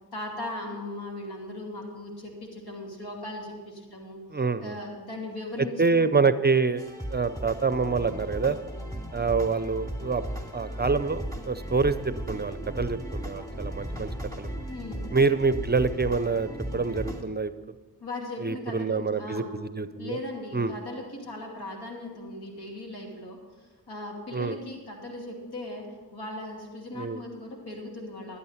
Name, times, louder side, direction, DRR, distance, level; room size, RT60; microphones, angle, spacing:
voice 1, 0.1-4.2 4.6-6.2 14.7-15.0 18.0-19.5 20.0-28.4, left 2 dB, 75° left, 0 dB, 2.7 m, -38 dB
voice 2, 4.3-4.8 5.8-6.8 7.1-8.6 9.1-10.2 10.5-14.1 14.4-14.5 15.1-17.7 18.4-20.2 20.5-20.7 24.3-24.6 26.9-27.2, right 4 dB, 25° right, 13 dB, 0.6 m, -26 dB
sound 1, 6.8-17.2, right 1 dB, 10° left, 2.4 m, -36 dB
12.0 x 8.5 x 5.7 m, 1.3 s
cardioid pair, 45°, 39 cm